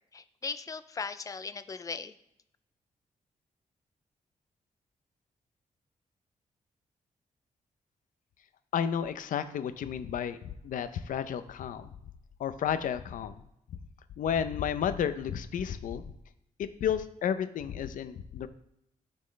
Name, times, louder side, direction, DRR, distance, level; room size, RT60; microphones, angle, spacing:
voice 1, 0.1-2.1, left 5 dB, 25° left, 12 dB, 0.4 m, -38 dB
voice 2, 8.7-10.4 10.6-11.9 12.4-13.4 14.2-16.0 16.6-18.5, left 8 dB, 85° left, 11 dB, 0.6 m, -32 dB
12.5 x 4.3 x 3.2 m, 0.78 s
wide cardioid pair, 155°, 13 cm